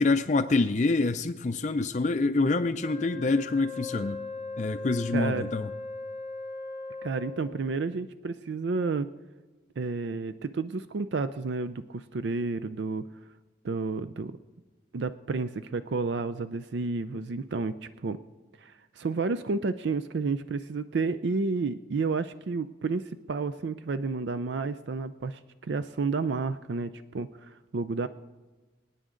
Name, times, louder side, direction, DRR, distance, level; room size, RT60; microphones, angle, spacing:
voice 1, 0.0-4.2 4.6-5.7, left 3 dB, 40° left, 9 dB, 0.4 m, -26 dB
Wind instrument woodwind instrument, 2.8-7.5, left 3 dB, 85° right, 5.4 m, -39 dB
voice 2, 5.1-5.5 7.0-9.1 9.8-13.0 13.6-14.4 14.9-17.7 18.0-18.2 18.6-28.1, right 4 dB, 70° right, 12 dB, 0.4 m, -31 dB
25.5 x 9.3 x 3.8 m, 1.2 s
head